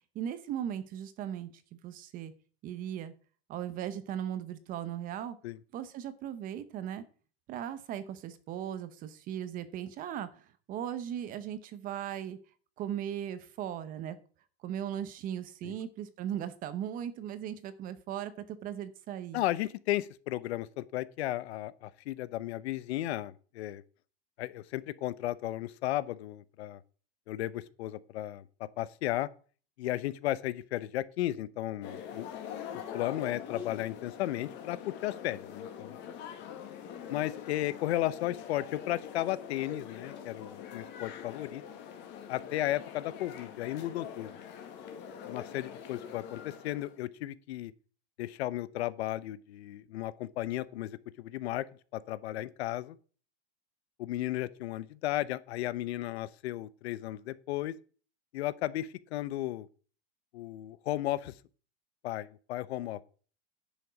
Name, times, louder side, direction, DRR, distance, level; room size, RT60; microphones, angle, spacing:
voice 1, 0.1-2.3 2.6-3.1 3.5-5.4 5.7-7.0 7.5-12.4 12.8-14.2 14.6-19.4, right 10 dB, 25° right, 0.8 m, -38 dB
voice 2, 19.3-23.8 24.4-26.8 27.3-29.3 29.8-32.3 32.9-36.0 37.1-41.6 42.3-44.3 45.2-47.7 48.2-51.7 51.9-53.0 54.0-57.7 58.3-59.7 60.3-61.3 62.0-63.0, left 14 dB, 80° left, 0.9 m, -34 dB
sound 1, 31.8-47.0, left 8 dB, 35° left, 1.9 m, -44 dB
10.0 x 7.2 x 5.1 m
supercardioid pair, 165°, 32 cm